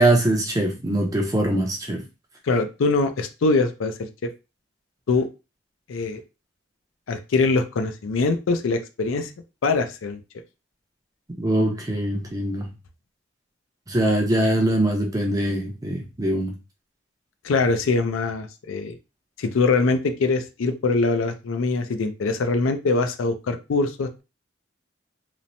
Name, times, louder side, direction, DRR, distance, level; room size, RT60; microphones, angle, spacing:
voice 1, 0.0-2.0 11.4-12.7 13.9-16.6, right 1 dB, 20° right, 1 dB, 0.5 m, -22 dB
voice 2, 2.4-4.3 5.1-5.3 5.9-6.2 7.1-9.3 9.6-10.2 17.4-18.9 19.4-24.2, left 3 dB, 90° left, 8 dB, 0.4 m, -23 dB
3.0 x 2.0 x 2.6 m, 0.28 s
head